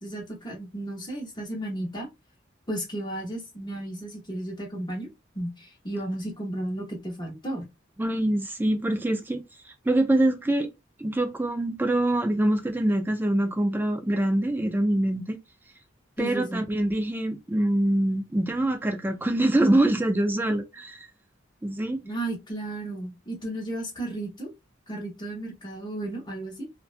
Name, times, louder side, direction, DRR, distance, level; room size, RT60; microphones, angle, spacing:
voice 1, 0.0-2.1 2.7-5.1 5.3-7.6 16.2-16.6 22.0-24.5 24.9-26.6, right 1 dB, 25° left, 0.9 m, -34 dB
voice 2, 8.0-10.7 11.0-15.4 16.2-21.1 21.6-22.0, right 1 dB, 10° right, 0.3 m, -24 dB
2.7 x 2.1 x 2.5 m
head